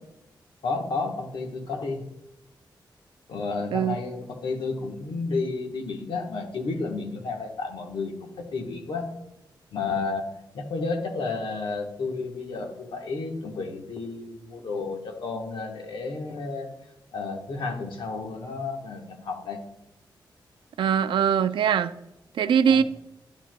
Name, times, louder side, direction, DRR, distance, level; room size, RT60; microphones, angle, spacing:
voice 1, 0.6-2.1 3.3-9.1 9.7-10.3 10.5-16.7 17.1-19.6 22.7-22.8, left 3 dB, 90° left, 2 dB, 1.2 m, -31 dB
voice 2, 20.8-21.9 22.3-22.8, right 8 dB, 90° right, 12 dB, 0.4 m, -21 dB
11.0 x 7.6 x 2.2 m, 0.89 s
wide cardioid pair, 130°, 8 cm